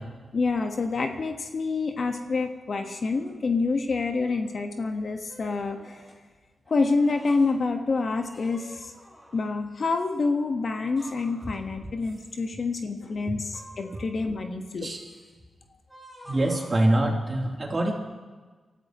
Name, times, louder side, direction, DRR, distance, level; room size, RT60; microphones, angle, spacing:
voice 1, 0.3-6.0 6.7-8.9 9.3-14.9, left 3 dB, 60° left, 5 dB, 1.4 m, -27 dB
sound 1, 2.0-2.4 3.0-3.4 4.0-4.6 5.3-6.2 6.6-7.6 8.3-9.6 9.9-10.2 10.9-11.7 12.0-12.5 13.4-14.5 14.9-15.3 15.9-17.3, equal, 10° left, 5.6 m, -50 dB
voice 2, 16.2-17.9, right 1 dB, 40° right, -1 dB, 3.3 m, -24 dB
25.5 x 13.5 x 3.1 m, 1.4 s
cardioid pair, 60°, 0 cm